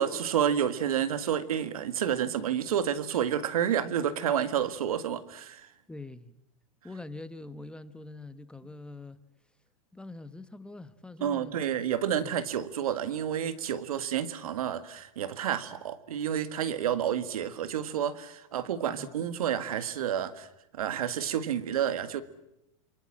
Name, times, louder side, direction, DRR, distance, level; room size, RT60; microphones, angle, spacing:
voice 1, 0.0-5.7 11.2-20.5 20.7-22.2, right 9 dB, 80° right, 12 dB, 1.8 m, -30 dB
voice 2, 5.9-6.3 6.8-9.2 9.9-11.7 12.2-12.3 18.9-19.1, left 2 dB, 5° left, 12 dB, 1.1 m, -44 dB
27.5 x 23.5 x 7.6 m, 0.87 s
hypercardioid pair, 120°, 18 cm